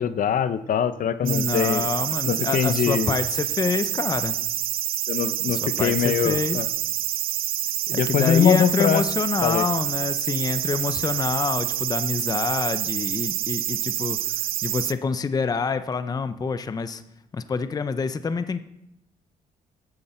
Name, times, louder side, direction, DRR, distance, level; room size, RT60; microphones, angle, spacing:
voice 1, 0.0-1.8 2.3-3.1 5.1-6.7 7.9-9.0 9.4-9.7, left 8 dB, 55° left, 13 dB, 0.7 m, -23 dB
voice 2, 1.2-4.4 5.5-6.6 7.9-17.0 17.3-18.6, left 5 dB, 25° left, 11 dB, 0.6 m, -27 dB
sound 1, 1.3-14.9, right 12 dB, 65° right, 0.5 m, -27 dB
14.5 x 9.8 x 4.3 m, 0.86 s
cardioid pair, 115°, 17 cm